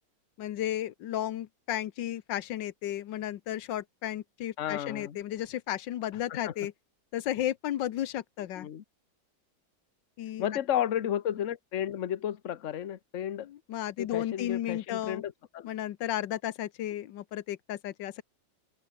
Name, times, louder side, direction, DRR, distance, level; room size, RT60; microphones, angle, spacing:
voice 1, 0.4-6.7 7.1-8.7 10.2-10.5 13.4-15.3 15.6-18.2, left 12 dB, 85° left, 1.6 m, -34 dB
voice 2, 4.6-5.2 6.4-6.5 8.6-8.8 10.4-13.5 14.0-15.7, left 10 dB, 50° left, 1.2 m, -33 dB
omnidirectional pair, 1.9 m